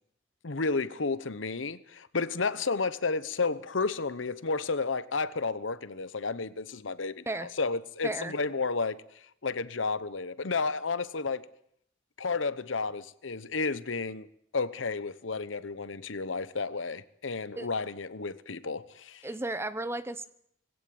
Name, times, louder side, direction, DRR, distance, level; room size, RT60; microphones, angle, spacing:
voice 1, 0.4-9.0 9.4-11.5 12.2-14.3 14.5-19.3, left 4 dB, 80° left, 1.0 m, -32 dB
voice 2, 8.0-8.3 17.6-17.7 19.2-20.2, right 2 dB, 15° right, 0.8 m, -34 dB
19.5 x 17.0 x 8.8 m
head